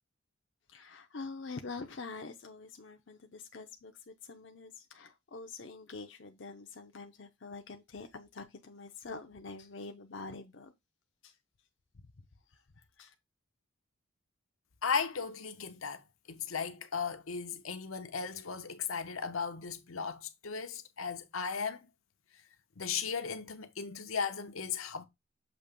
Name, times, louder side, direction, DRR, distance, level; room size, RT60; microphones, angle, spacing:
voice 1, 0.7-10.7 11.2-11.4 12.5-13.1, left 4 dB, 55° left, 0.6 m, -46 dB
voice 2, 14.8-16.0 16.3-21.9 22.8-25.1, left 6 dB, 80° left, 0.9 m, -36 dB
7.0 x 2.9 x 5.1 m
head